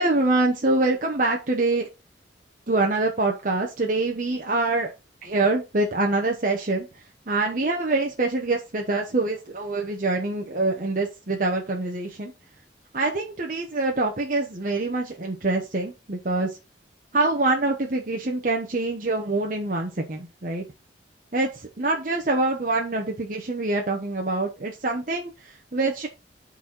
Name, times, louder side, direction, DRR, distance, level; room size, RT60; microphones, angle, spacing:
voice 1, 0.0-1.9 2.7-4.9 5.2-6.9 7.3-12.3 12.9-16.6 17.1-20.6 21.3-26.1, right 2 dB, 45° right, 1 dB, 1.0 m, -25 dB
10.0 x 4.2 x 4.4 m, 0.28 s
head